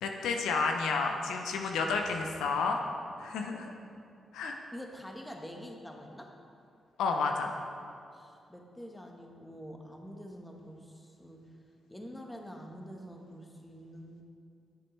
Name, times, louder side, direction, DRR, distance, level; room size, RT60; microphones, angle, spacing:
voice 1, 0.0-2.8 3.2-3.7 4.3-4.6 7.0-7.6, left 4 dB, 80° left, 3 dB, 0.6 m, -31 dB
voice 2, 4.7-6.3 8.1-11.5 11.9-14.2, equal, 10° left, 2 dB, 1.3 m, -46 dB
10.0 x 6.9 x 3.3 m, 2.5 s
supercardioid pair, 45°, 0 cm